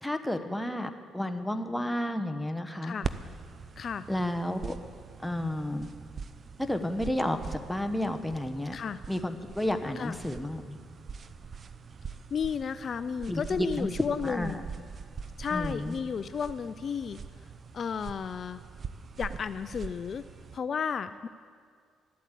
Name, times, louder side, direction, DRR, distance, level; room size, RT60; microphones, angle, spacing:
voice 1, 0.0-3.0 4.1-4.7 5.2-5.9 6.6-8.8 9.1-10.8 13.3-13.9 14.2-14.6 15.5-16.0, left 1 dB, 5° left, 6 dB, 1.0 m, -31 dB
sound 1, 3.0-20.6, right 5 dB, 45° right, 0.6 m, -43 dB
voice 2, 12.3-14.6 15.4-17.2 17.7-18.6 19.2-20.2 20.5-21.3, left 6 dB, 50° left, 12 dB, 0.4 m, -33 dB
12.5 x 8.4 x 8.3 m, 2.1 s
supercardioid pair, 70°, 0 cm